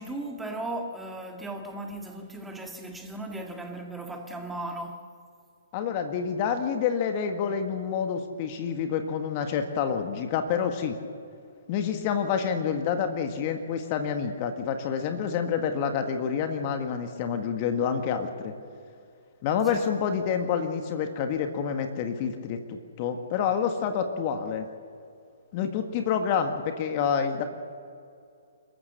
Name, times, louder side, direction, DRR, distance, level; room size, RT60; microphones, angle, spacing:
voice 1, 0.0-5.0 19.7-20.0, right 2 dB, 5° right, 2.0 m, -36 dB
voice 2, 5.7-11.0 11.7-18.5 19.4-24.7 25.5-27.4, left 7 dB, 35° left, 1.8 m, -28 dB
29.0 x 14.0 x 6.9 m
figure-of-eight pair, 125°, 0 cm